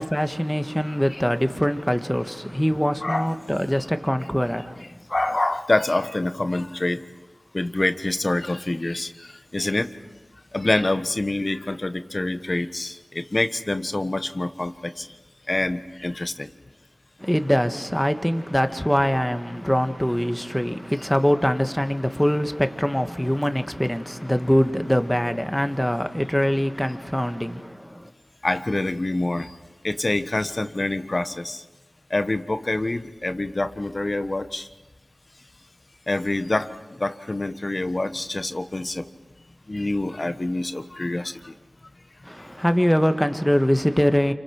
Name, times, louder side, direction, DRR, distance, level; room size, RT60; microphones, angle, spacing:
voice 1, 0.0-4.9 17.2-28.1 42.2-44.3, equal, 5° left, 1.8 m, -23 dB
voice 2, 0.9-1.2 3.0-3.3 5.1-7.0 7.5-9.9 10.5-15.1 15.5-16.5 28.4-29.5 29.8-31.6 32.1-34.7 36.1-36.7 37.0-39.1 39.7-41.5, left 2 dB, 40° left, 1.3 m, -26 dB
29.0 x 26.5 x 6.2 m
wide cardioid pair, 55°, 0 cm